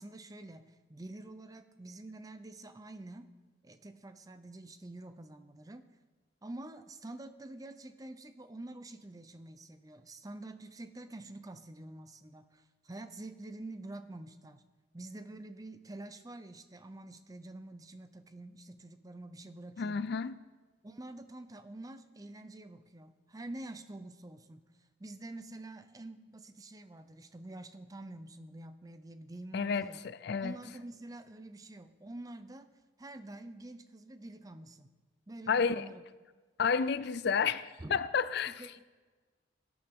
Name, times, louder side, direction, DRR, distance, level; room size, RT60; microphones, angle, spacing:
voice 1, 0.0-3.3 3.6-5.8 6.4-14.6 14.9-20.1 20.8-24.6 25.0-30.0 30.4-32.7 33.0-34.9 35.3-36.0 37.8-38.0 38.5-38.8, right 2 dB, 20° right, 0.5 m, -47 dB
voice 2, 19.8-20.3 29.5-30.6 35.5-35.9 36.6-38.8, left 6 dB, 55° left, 0.4 m, -31 dB
17.5 x 9.6 x 3.6 m
head